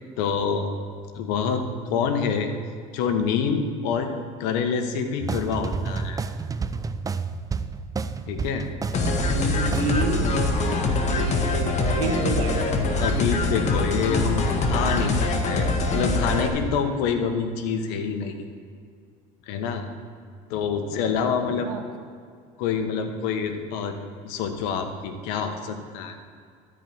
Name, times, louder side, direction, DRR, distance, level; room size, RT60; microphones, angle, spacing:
voice 1, 0.2-0.7 1.1-2.5 2.9-4.1 4.4-6.2 8.3-8.7 13.0-18.5 19.5-19.8 20.5-21.7 22.6-24.0 24.2-26.2, left 6 dB, 75° left, 7 dB, 1.2 m, -26 dB
sound 1, 5.2-10.2, right 5 dB, 20° right, 0.5 m, -30 dB
sound 2, 8.9-16.5, left 3 dB, 40° left, 1.6 m, -24 dB
voice 2, 9.4-10.8 11.1-12.6 20.8-21.0 21.4-21.8, right 5 dB, 90° right, 4 dB, 1.3 m, -30 dB
13.0 x 5.0 x 7.6 m, 2.2 s
supercardioid pair, 85°, 17 cm